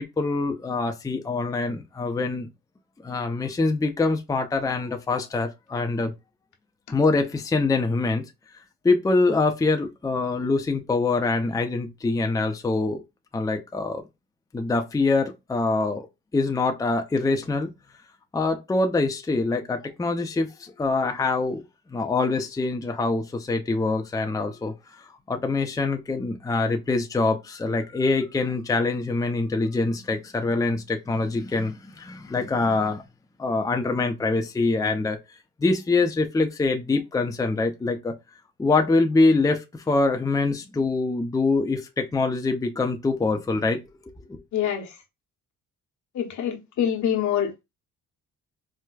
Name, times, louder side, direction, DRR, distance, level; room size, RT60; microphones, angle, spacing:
voice 1, 0.0-2.5 3.0-6.1 6.9-8.3 8.8-13.0 13.3-14.0 14.5-16.1 16.3-17.7 18.3-21.6 21.9-33.0 33.4-35.2 35.6-38.1 38.6-44.4, left 3 dB, 10° left, 0.5 m, -24 dB
voice 2, 44.5-44.9 46.1-47.5, left 9 dB, 70° left, 1.1 m, -25 dB
4.6 x 2.1 x 2.3 m
cardioid pair, 90°, 30 cm